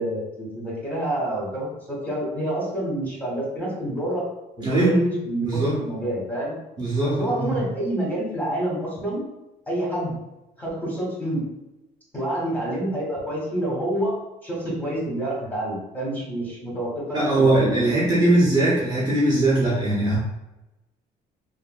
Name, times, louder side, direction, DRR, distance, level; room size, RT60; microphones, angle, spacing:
voice 1, 0.0-4.2 4.6-6.5 7.0-9.2 9.7-10.1 10.6-11.4 12.1-14.1 14.4-18.3, right 1 dB, 10° left, -5 dB, 1.3 m, -28 dB
voice 2, 4.6-5.1 5.4-5.8 6.8-7.6 17.1-20.2, right 2 dB, 25° right, -7 dB, 0.8 m, -21 dB
3.3 x 2.6 x 2.3 m, 0.98 s
cardioid pair, 110°, 17 cm